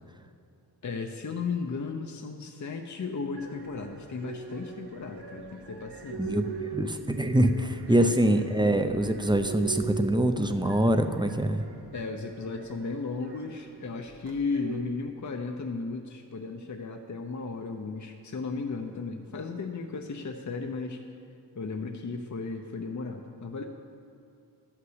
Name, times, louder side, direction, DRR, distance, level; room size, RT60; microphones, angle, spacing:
voice 1, 0.8-6.3 7.9-8.0 11.9-21.0 21.5-23.6, left 4 dB, 45° left, 4 dB, 0.7 m, -35 dB
sound 1, 3.4-14.8, right 4 dB, 65° right, 1.0 m, -42 dB
voice 2, 6.2-11.7, right 1 dB, 10° right, 7 dB, 0.7 m, -24 dB
12.5 x 5.9 x 7.9 m, 2.5 s
wide cardioid pair, 70°, 42 cm